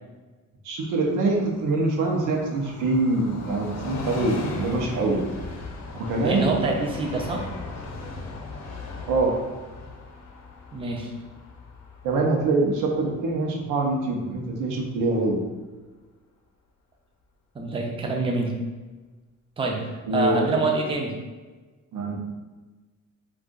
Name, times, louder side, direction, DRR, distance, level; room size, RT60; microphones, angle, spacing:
voice 1, 0.6-5.2 5.9-6.5 9.1-9.3 12.0-15.4 20.0-20.6 21.9-22.2, right 2 dB, 85° right, 0 dB, 0.7 m, -24 dB
Train, 0.8-14.1 14.4-14.5, left 2 dB, 60° left, 0.6 m, -38 dB
voice 2, 6.1-7.5 10.7-11.1 17.6-18.6 19.6-21.2, right 3 dB, 20° right, 1 dB, 0.5 m, -26 dB
2.5 x 2.4 x 3.7 m, 1.3 s
cardioid pair, 90°, 30 cm